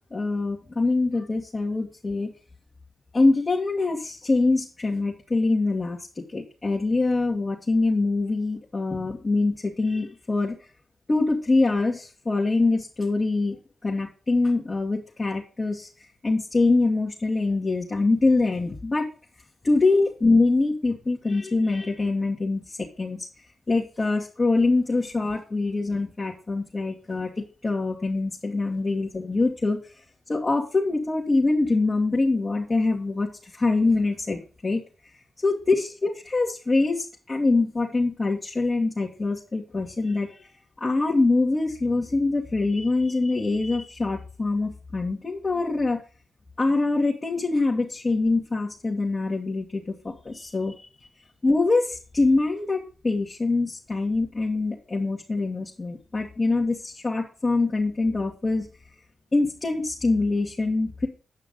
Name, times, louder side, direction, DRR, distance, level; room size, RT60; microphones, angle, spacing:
voice 1, 0.1-2.3 3.1-10.6 11.1-13.6 13.8-15.9 16.2-19.1 19.6-23.3 23.7-29.8 30.3-34.8 35.4-40.5 40.8-46.0 46.6-50.7 51.4-58.7 59.3-61.1, left 3 dB, 35° left, -4 dB, 2.0 m, -24 dB
9.5 x 5.8 x 5.3 m, 0.36 s
cardioid pair, 65°, 0 cm